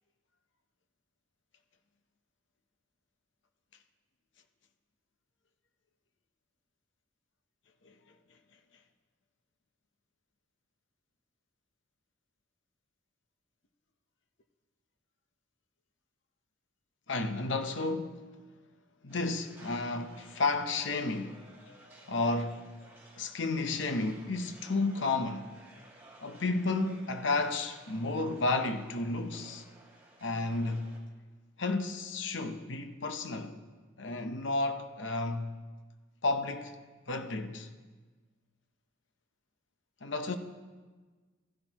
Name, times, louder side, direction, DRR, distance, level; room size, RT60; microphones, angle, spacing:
voice 1, 17.1-18.2 19.0-21.4 22.1-22.8 23.2-25.5 26.2-29.6 30.2-31.0 31.6-33.6 34.0-35.6 36.2-36.8 37.1-37.7 40.0-40.4, left 3 dB, 65° left, 0.9 m, -32 dB
sound 1, 19.1-31.0, right 1 dB, 15° right, 2.5 m, -57 dB
16.0 x 14.5 x 3.0 m
head